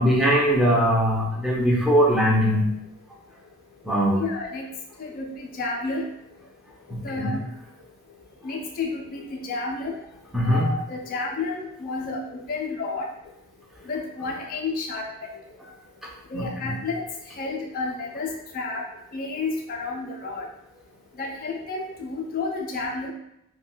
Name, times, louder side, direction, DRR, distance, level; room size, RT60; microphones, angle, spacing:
voice 1, 0.0-2.6 3.8-4.2 7.2-7.3 10.3-10.7 16.3-16.8, equal, ahead, -4 dB, 0.6 m, -21 dB
voice 2, 4.2-4.7 5.0-6.1 7.0-7.4 8.4-10.0 10.4-13.1 13.8-15.6 16.3-18.9 19.1-20.5 21.1-23.1, left 3 dB, 45° left, 0 dB, 0.4 m, -31 dB
2.3 x 2.2 x 3.8 m, 0.80 s
head